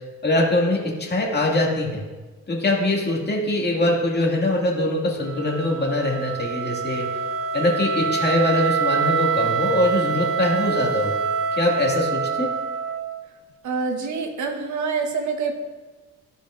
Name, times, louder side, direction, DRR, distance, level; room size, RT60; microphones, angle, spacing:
voice 1, 0.2-2.0 2.5-7.1 7.5-11.1 11.5-12.5, left 1 dB, 35° left, -2 dB, 2.1 m, -22 dB
Wind instrument woodwind instrument, 5.2-13.3, right 6 dB, 50° right, 0.7 m, -26 dB
voice 2, 13.6-15.5, right 5 dB, 70° right, 4 dB, 1.2 m, -26 dB
13.5 x 5.2 x 2.5 m, 1.3 s
cardioid pair, 90°, 30 cm